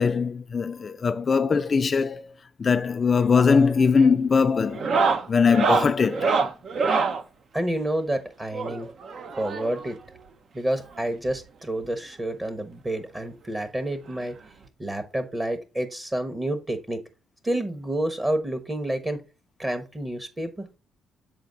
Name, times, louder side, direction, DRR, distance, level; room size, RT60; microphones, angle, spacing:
voice 1, 0.0-2.3 2.6-6.3, left 5 dB, 40° left, 0.4 m, -21 dB
sound 1, 3.2-3.5 3.8-4.1 4.7-7.2 8.5-9.9 11.0-11.1 11.3-11.4 11.8-11.9 13.2-13.3 14.7-14.8, right 4 dB, 55° right, 0.7 m, -25 dB
voice 2, 7.5-8.9 9.3-10.0 10.5-14.4 14.8-17.0 17.4-19.2 19.6-20.7, right 1 dB, 20° right, 1.0 m, -29 dB
6.9 x 4.1 x 3.8 m
cardioid pair, 90°, 0 cm